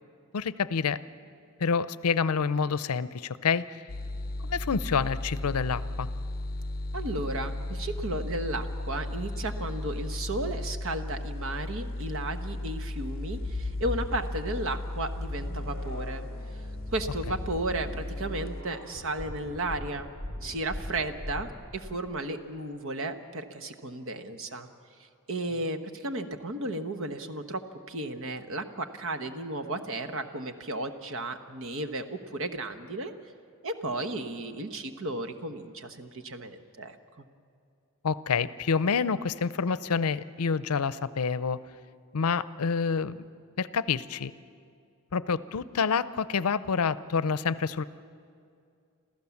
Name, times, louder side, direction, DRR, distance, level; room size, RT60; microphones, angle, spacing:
voice 1, 0.3-1.0 1.6-3.8 4.4-6.1 38.0-41.6 42.1-43.2 43.6-44.3 45.1-47.8, left 5 dB, 90° left, 16 dB, 0.6 m, -28 dB
sound 1, 3.9-18.6, left 1 dB, 45° left, 0.6 m, -35 dB
voice 2, 6.9-16.2 16.9-20.1 20.4-24.7 25.3-27.6 27.9-33.1 33.6-37.0, right 2 dB, 65° right, 8 dB, 1.2 m, -34 dB
sound 2, 13.1-14.5 15.0-21.9, left 2 dB, 90° right, 4.7 m, -39 dB
27.5 x 14.5 x 7.2 m, 2.4 s
head